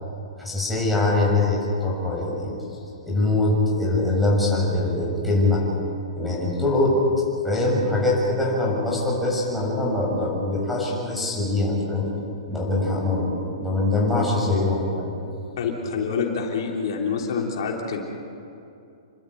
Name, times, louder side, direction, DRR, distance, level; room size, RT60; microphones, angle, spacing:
voice 1, 0.4-2.5 3.0-5.6 6.2-7.0 7.4-12.1 12.5-15.1, left 2 dB, ahead, -5 dB, 7.1 m, -23 dB
voice 2, 15.6-18.0, left 5 dB, 65° left, 0 dB, 3.5 m, -26 dB
29.5 x 12.5 x 9.5 m, 2.7 s
hypercardioid pair, 145°, 3 cm